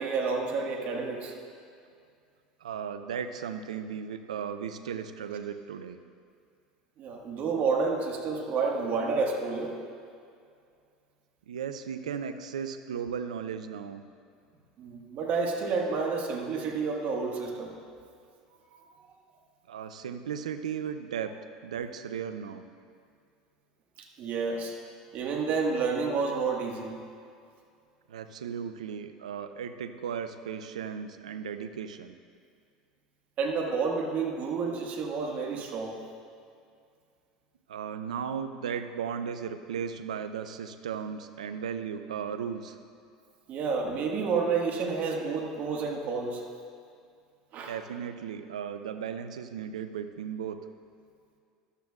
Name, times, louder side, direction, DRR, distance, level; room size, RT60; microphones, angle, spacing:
voice 1, 0.0-1.3 7.0-9.7 14.8-17.7 18.7-18.8 24.0-24.8 25.1-27.0 33.4-36.0 43.5-46.4 47.5-47.7, right 4 dB, 50° right, 1 dB, 1.7 m, -30 dB
voice 2, 2.6-6.0 11.5-14.0 19.7-21.4 21.6-22.7 28.1-32.2 37.7-42.8 47.7-50.6, right 7 dB, 80° right, 10 dB, 0.5 m, -36 dB
14.0 x 12.0 x 2.4 m, 2.3 s
hypercardioid pair, 80°, 4 cm